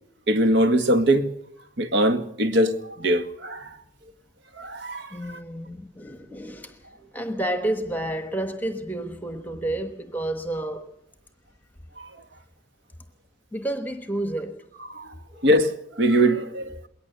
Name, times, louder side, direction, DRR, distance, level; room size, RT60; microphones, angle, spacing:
voice 1, 0.3-1.3 1.8-3.7 4.6-5.1 14.9-15.1 15.4-16.9, right 1 dB, 65° right, 1.6 m, -22 dB
voice 2, 5.1-6.8 7.1-10.9 13.5-14.6, right 1 dB, 10° left, 1.1 m, -30 dB
21.5 x 18.5 x 6.8 m
head